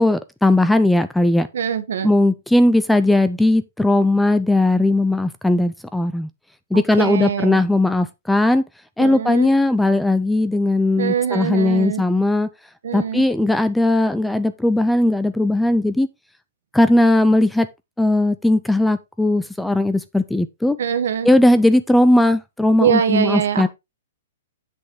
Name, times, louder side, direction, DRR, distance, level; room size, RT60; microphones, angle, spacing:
voice 1, 0.0-1.5 2.0-6.3 6.7-8.6 9.0-12.5 12.9-16.1 16.7-17.7 18.0-20.8 21.2-23.7, left 1 dB, ahead, 0.4 m, -18 dB
voice 2, 1.5-2.1 6.7-7.6 9.0-9.5 11.0-12.0 12.8-13.2 20.8-21.3 22.8-23.7, right 8 dB, 80° right, 1.3 m, -23 dB
7.9 x 6.1 x 3.7 m
hypercardioid pair, 170°, 0 cm